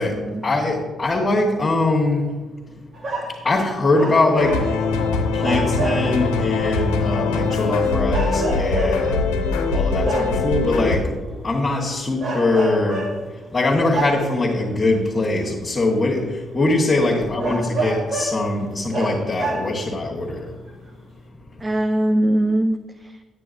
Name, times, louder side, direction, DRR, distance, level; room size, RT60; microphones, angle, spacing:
voice 1, 0.0-2.3 3.4-4.8 5.3-11.1 11.4-13.1 13.5-20.6, left 2 dB, 35° left, -4 dB, 1.4 m, -22 dB
sound 1, 2.9-3.4 3.9-5.0 5.4-6.3 7.0-7.1 8.1-9.2 10.0-10.5 11.5-11.8 12.2-13.2 13.9-14.5 15.4-15.5 16.1-16.2 16.6-16.7 17.4-18.5 18.9-19.9 20.7-20.8, right 2 dB, 50° right, 1.4 m, -27 dB
sound 2, 4.4-11.0, left 4 dB, 75° left, 0.7 m, -22 dB
voice 2, 17.2-17.6 21.6-23.2, right 1 dB, 25° right, 6 dB, 0.5 m, -22 dB
9.2 x 8.1 x 2.6 m, 1.3 s
hypercardioid pair, 45°, 0 cm